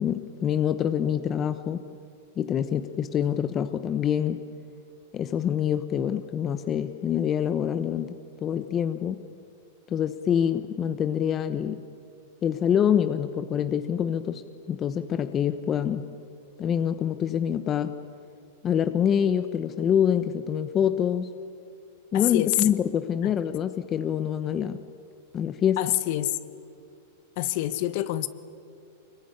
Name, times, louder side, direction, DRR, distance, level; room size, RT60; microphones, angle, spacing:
voice 1, 0.0-1.8 2.4-4.4 5.1-9.2 9.9-11.8 12.4-14.4 14.7-16.0 16.6-17.9 18.6-21.3 22.1-24.8 25.3-25.8, left 9 dB, 25° left, 10 dB, 1.0 m, -26 dB
voice 2, 22.1-22.6 23.2-23.3 25.8-26.4 27.4-28.3, left 15 dB, 55° left, 13 dB, 1.4 m, -26 dB
24.5 x 22.0 x 9.9 m, 2.4 s
supercardioid pair, 140°, 0 cm